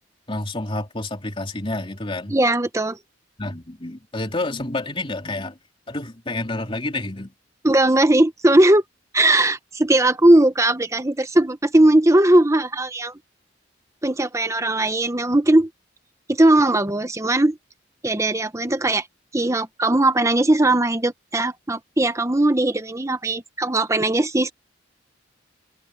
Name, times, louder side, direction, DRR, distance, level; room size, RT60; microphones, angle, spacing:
voice 1, 0.3-2.3 3.4-5.6 5.9-7.3, left 2 dB, 30° left, 3.3 m, -29 dB
voice 2, 2.3-3.0 7.6-8.8 9.1-13.1 14.0-15.7 16.3-17.6 18.0-19.1 19.3-24.5, right 1 dB, 15° right, 0.9 m, -18 dB
head